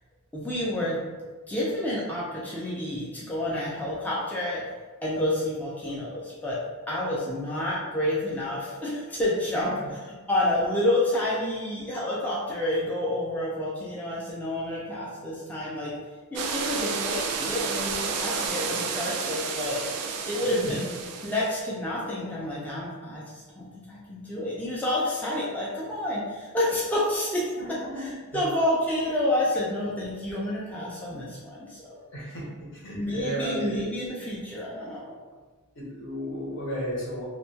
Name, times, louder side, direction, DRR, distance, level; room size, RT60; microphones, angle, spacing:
voice 1, 0.3-1.0 1.5-4.6 5.0-6.6 6.9-10.0 10.3-15.9 16.3-19.8 20.2-21.0 21.2-31.9 33.0-35.2, left 1 dB, 5° left, -7 dB, 0.3 m, -29 dB
sound 1, 16.3-21.6, right 5 dB, 80° right, 0.3 m, -31 dB
voice 2, 27.6-28.1 32.1-32.4 32.7-33.8 35.8-37.2, equal, 60° left, -5 dB, 0.7 m, -34 dB
2.2 x 2.1 x 2.6 m, 1.3 s
head